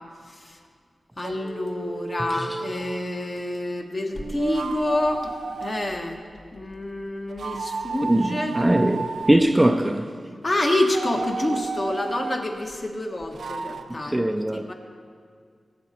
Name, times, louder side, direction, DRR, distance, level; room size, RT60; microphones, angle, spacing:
voice 1, 1.2-5.3 5.6-6.2 6.5-8.6 10.4-14.7, left 1 dB, 35° left, 1.2 m, -27 dB
sound 1, 1.2-3.1 4.1-5.9 7.3-9.3 10.4-12.4 13.3-13.8, right 4 dB, 85° right, 0.5 m, -33 dB
voice 2, 8.0-10.1 14.0-14.7, right 1 dB, 15° right, 0.4 m, -21 dB
17.5 x 8.3 x 4.3 m
wide cardioid pair, 100°, 0 cm